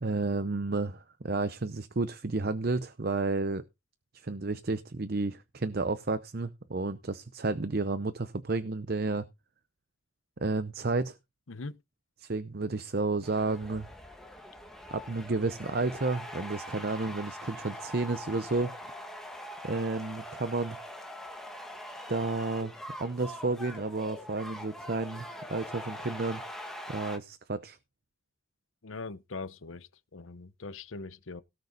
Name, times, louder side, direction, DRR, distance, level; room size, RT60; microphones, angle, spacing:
voice 1, 0.0-3.6 4.1-9.3 10.4-11.2 12.2-13.9 14.9-18.7 19.6-20.8 22.1-22.7 23.0-26.4 26.9-27.8, right 3 dB, 45° right, 0.7 m, -31 dB
voice 2, 11.5-11.8 28.8-31.4, left 3 dB, 70° left, 0.9 m, -41 dB
sound 1, 13.2-27.2, equal, ahead, 1.9 m, -43 dB
17.5 x 6.6 x 4.0 m
head